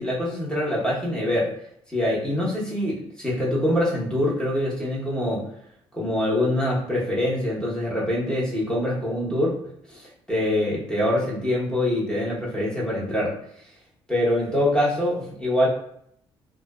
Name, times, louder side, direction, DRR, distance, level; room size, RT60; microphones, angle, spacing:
voice 1, 0.0-1.5 1.9-5.5 5.9-9.6 9.9-13.3 14.1-15.7, left 1 dB, 10° left, -5 dB, 1.0 m, -24 dB
2.4 x 2.2 x 2.3 m, 0.70 s
cardioid pair, 85°, 11 cm